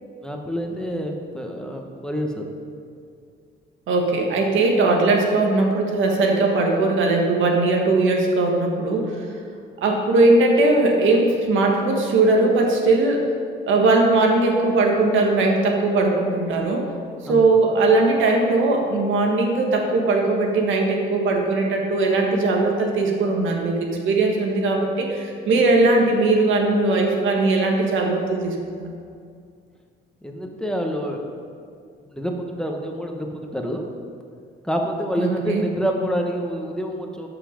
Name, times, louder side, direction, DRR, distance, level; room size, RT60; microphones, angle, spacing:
voice 1, 0.2-2.5 17.2-17.4 30.2-31.2 32.1-33.9 34.6-37.3, equal, 5° left, 1 dB, 1.2 m, -27 dB
voice 2, 3.9-9.2 9.8-13.2 13.7-16.8 17.2-28.9 35.2-35.6, right 2 dB, 80° right, 1 dB, 1.6 m, -19 dB
12.5 x 5.8 x 5.2 m, 2.3 s
cardioid pair, 90°, 20 cm